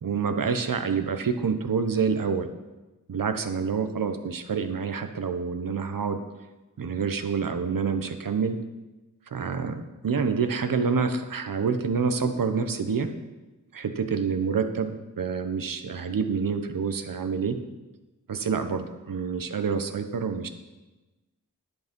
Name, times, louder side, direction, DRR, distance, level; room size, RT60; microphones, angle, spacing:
voice 1, 0.0-2.5 3.1-6.2 6.8-8.6 9.3-13.1 13.7-17.6 18.3-20.5, right 5 dB, 80° right, 8 dB, 1.0 m, -27 dB
10.5 x 8.0 x 5.3 m, 1.1 s
wide cardioid pair, 60°, 33 cm